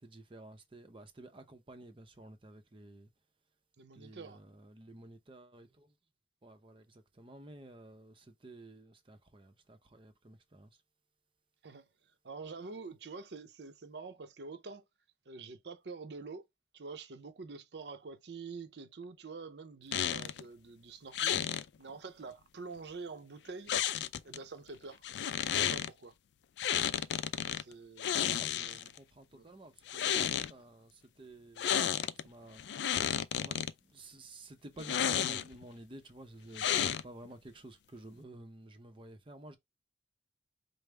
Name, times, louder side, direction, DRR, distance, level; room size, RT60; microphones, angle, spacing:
voice 1, 0.0-3.1 3.9-6.0 6.4-10.8 28.2-32.6 33.3-39.6, right 1 dB, 30° right, 0.6 m, -52 dB
voice 2, 3.8-4.4 11.6-14.8 15.3-16.4 16.7-25.0 25.4-26.1 27.5-28.9 29.3-29.5, right 4 dB, 70° right, 0.6 m, -47 dB
sound 1, 19.9-20.4 21.1-21.6 23.7-24.4 25.0-25.9 26.6-27.6 28.0-29.0 29.8-30.5 31.6-32.2 32.6-33.7 34.8-35.6 36.5-37.3, left 9 dB, 75° left, 0.3 m, -32 dB
5.1 x 2.0 x 3.3 m
head